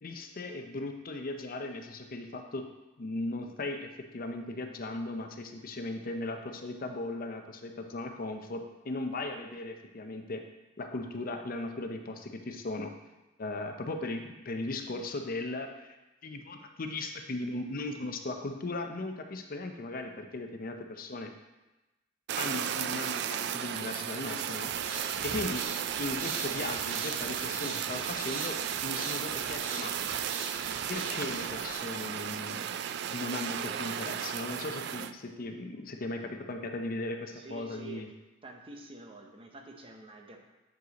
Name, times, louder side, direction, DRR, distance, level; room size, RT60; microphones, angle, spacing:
voice 1, 0.0-2.7 3.0-10.4 10.8-12.9 13.4-16.0 16.2-21.3 22.4-24.7 25.2-25.7 26.0-29.9 30.9-32.8 33.1-38.1, left 2 dB, 45° left, 5 dB, 0.6 m, -37 dB
Fire, 22.3-35.1, right 9 dB, 60° right, 0.3 m, -34 dB
sound 1, 24.6-31.7, right 3 dB, 80° right, 1.1 m, -41 dB
voice 2, 37.3-38.1 38.4-40.4, right 2 dB, 30° right, 2 dB, 0.8 m, -48 dB
7.8 x 5.2 x 4.1 m, 1.1 s
head